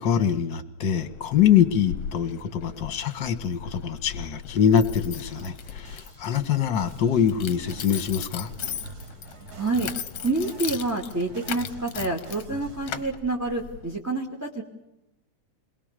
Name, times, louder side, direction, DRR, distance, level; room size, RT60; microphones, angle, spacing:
voice 1, 0.0-8.5, left 8 dB, 45° left, 10 dB, 2.1 m, -24 dB
Keys jangling, 1.0-14.0, left 9 dB, 60° left, 2.0 m, -38 dB
sound 1, 5.1-13.0, right 3 dB, 75° right, 5.7 m, -44 dB
voice 2, 9.5-9.9 10.2-14.6, right 2 dB, 5° right, 0 dB, 2.1 m, -28 dB
29.0 x 22.0 x 6.8 m, 0.87 s
omnidirectional pair, 3.3 m